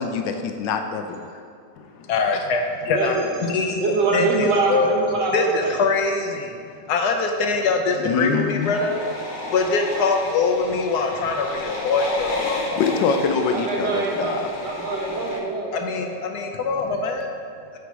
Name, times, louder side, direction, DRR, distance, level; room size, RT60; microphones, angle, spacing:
voice 1, 0.0-1.4 8.0-8.8 12.8-14.5, left 5 dB, 85° left, 6 dB, 1.4 m, -24 dB
voice 2, 2.1-3.2 3.4-3.8 4.1-5.0 5.3-6.5 6.9-9.0 9.5-12.8 15.7-17.3, left 4 dB, 70° left, 4 dB, 1.1 m, -23 dB
voice 3, 2.9-3.3 3.8-5.8 13.5-14.3 14.6-16.1, right 3 dB, 70° right, -1 dB, 1.7 m, -24 dB
sound 1, 8.6-15.4, left 2 dB, 45° left, 0.7 m, -32 dB
8.5 x 5.1 x 4.7 m, 2.3 s
omnidirectional pair, 1.9 m